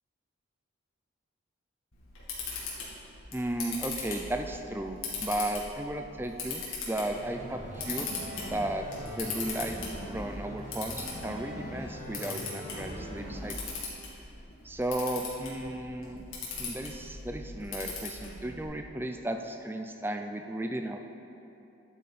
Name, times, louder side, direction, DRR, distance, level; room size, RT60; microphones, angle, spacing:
Camera, 1.9-18.6, left 4 dB, 85° left, 2.5 m, -40 dB
voice 1, 3.3-8.1 8.4-9.8 10.1-13.6 13.8-13.9 14.6-16.3 16.6-21.1, right 1 dB, 10° right, 5 dB, 0.5 m, -35 dB
sound 1, 7.2-13.5, equal, 30° right, 2.3 m, -41 dB
11.5 x 8.4 x 4.2 m, 2.9 s
head